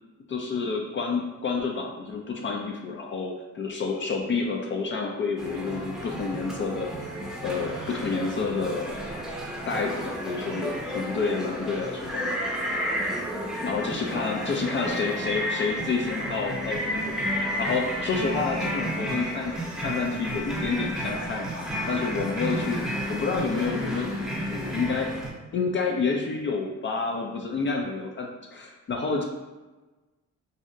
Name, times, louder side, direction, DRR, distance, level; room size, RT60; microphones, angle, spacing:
voice 1, 0.3-7.2 7.4-9.0 9.7-12.5 13.6-22.8 23.1-25.1 25.5-29.2, left 4 dB, 40° left, 0 dB, 0.4 m, -29 dB
sound 1, 5.4-25.3, equal, ahead, 0.7 m, -32 dB
2.7 x 2.1 x 3.7 m, 1.2 s
cardioid pair, 90°, 30 cm